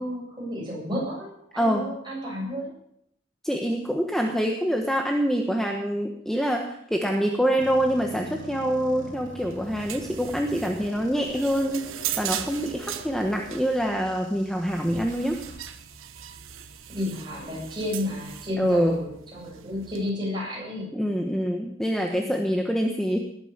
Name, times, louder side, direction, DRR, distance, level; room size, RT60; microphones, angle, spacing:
voice 1, 0.0-2.7 16.9-20.9, left 1 dB, 25° right, -3 dB, 7.9 m, -32 dB
voice 2, 1.6-1.9 3.4-11.9 12.2-15.4 18.6-19.0 20.9-23.2, equal, ahead, 2 dB, 1.2 m, -25 dB
sound 1, 7.6-15.6, equal, 45° right, 6.7 m, -43 dB
sound 2, 9.4-20.1, right 10 dB, 80° right, 1.2 m, -39 dB
19.5 x 9.1 x 7.3 m, 0.76 s
head